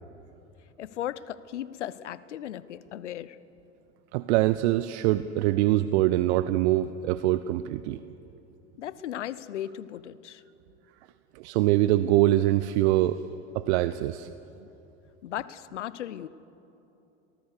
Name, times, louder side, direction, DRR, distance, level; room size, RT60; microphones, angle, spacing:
voice 1, 0.8-3.4 8.8-10.4 15.2-16.3, left 11 dB, 90° left, 18 dB, 0.7 m, -36 dB
voice 2, 4.1-8.0 11.3-13.2 13.5-14.3, right 15 dB, 70° right, 14 dB, 0.7 m, -24 dB
24.5 x 19.0 x 6.7 m, 2.9 s
hypercardioid pair, 85°, 35 cm